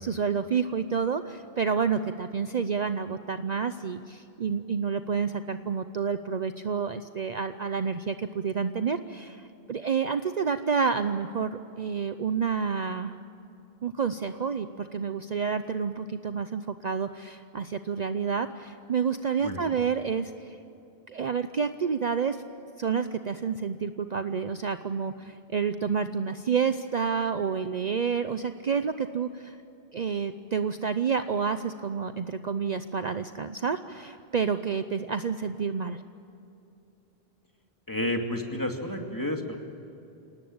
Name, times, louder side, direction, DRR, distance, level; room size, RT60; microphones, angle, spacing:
voice 1, 0.0-13.2 13.8-20.6 21.1-22.4 22.8-29.6 29.9-36.0, right 6 dB, 45° right, 10 dB, 0.7 m, -29 dB
voice 2, 37.9-39.6, left 1 dB, 20° left, 2 dB, 2.5 m, -30 dB
28.0 x 18.5 x 8.8 m, 2.8 s
omnidirectional pair, 1.0 m